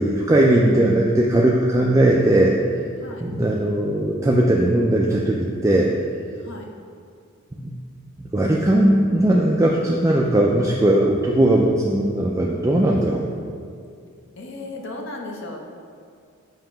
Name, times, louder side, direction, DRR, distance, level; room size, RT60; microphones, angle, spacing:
voice 1, 0.0-2.5 3.2-5.9 7.6-7.7 8.3-13.2, right 1 dB, 15° right, -3 dB, 0.3 m, -18 dB
voice 2, 3.0-3.3 6.4-6.7 13.2-13.3 14.4-15.6, left 2 dB, 60° left, 1 dB, 0.8 m, -36 dB
7.3 x 2.9 x 5.6 m, 2.2 s
head